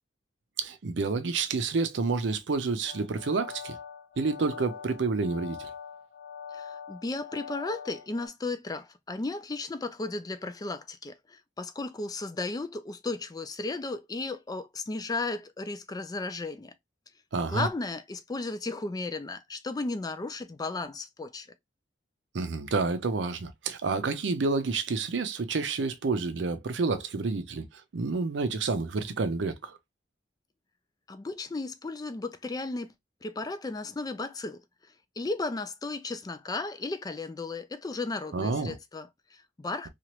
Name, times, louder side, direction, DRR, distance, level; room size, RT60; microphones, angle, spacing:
voice 1, 0.6-3.8 4.2-5.7 17.3-17.7 22.3-27.6 27.9-29.8 38.3-38.8, right 4 dB, 70° right, 0.5 m, -29 dB
sound 1, 2.9-8.3, left 7 dB, 60° left, 0.6 m, -43 dB
voice 2, 6.5-16.7 17.4-21.5 31.1-32.9 33.2-34.6 35.2-39.9, left 3 dB, 20° left, 0.4 m, -35 dB
3.0 x 2.4 x 2.9 m
head